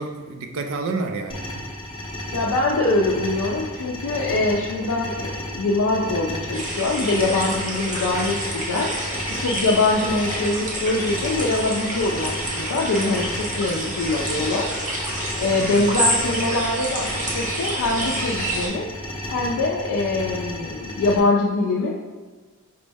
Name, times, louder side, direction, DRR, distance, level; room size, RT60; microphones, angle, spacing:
voice 1, 0.0-1.6 13.6-13.9 15.5-15.9, right 3 dB, 60° right, 5 dB, 0.4 m, -30 dB
sound 1, 1.3-21.2, left 1 dB, 25° left, 0.6 m, -33 dB
voice 2, 2.3-8.9 9.4-14.7 15.4-18.9 19.3-22.0, left 2 dB, 80° left, -2 dB, 0.4 m, -23 dB
sound 2, 6.5-18.7, right 1 dB, 35° right, 0.8 m, -28 dB
5.1 x 2.0 x 3.4 m, 1.3 s
head